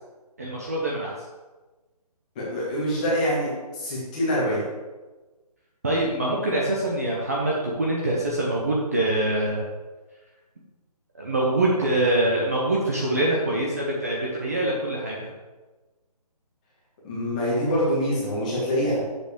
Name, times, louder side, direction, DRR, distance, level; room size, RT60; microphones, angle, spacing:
voice 1, 0.4-1.1 5.8-9.7 11.1-15.3, right 1 dB, 25° right, -4 dB, 0.7 m, -24 dB
voice 2, 2.3-4.6 17.0-19.0, equal, 10° left, -7 dB, 1.5 m, -25 dB
7.5 x 6.9 x 3.5 m, 1.2 s
hypercardioid pair, 175°, 20 cm